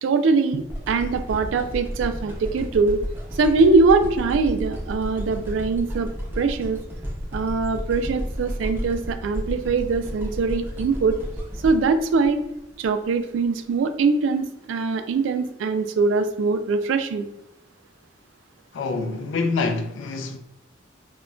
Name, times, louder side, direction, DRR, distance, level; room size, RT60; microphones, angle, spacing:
voice 1, 0.0-3.0 3.3-6.1 6.4-6.8 7.3-11.2 11.6-12.4 12.8-17.3, right 4 dB, 80° right, 0.3 m, -22 dB
sound 1, 0.7-12.9 13.5-13.6, equal, 10° right, 0.4 m, -32 dB
voice 2, 18.7-20.4, left 3 dB, 75° left, 0.3 m, -26 dB
2.2 x 2.2 x 3.7 m
head